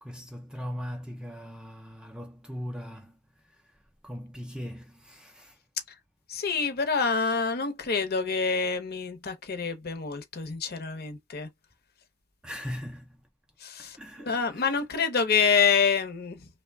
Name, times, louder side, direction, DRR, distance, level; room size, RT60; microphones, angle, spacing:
voice 1, 0.0-3.2 3.4-5.6 12.4-13.2 13.8-14.8, equal, 5° right, 0.3 m, -40 dB
voice 2, 6.3-11.5 13.6-16.5, left 5 dB, 45° left, 0.7 m, -27 dB
3.0 x 2.1 x 3.4 m
head